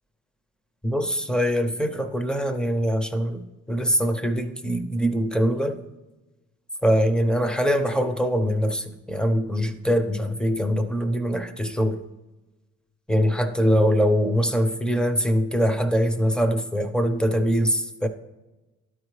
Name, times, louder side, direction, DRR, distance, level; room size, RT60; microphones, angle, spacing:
voice 1, 0.8-3.4 3.7-5.8 6.8-12.0 13.1-18.1, equal, 5° left, 0.6 m, -23 dB
12.0 x 4.7 x 3.2 m
cardioid pair, 90°, 30 cm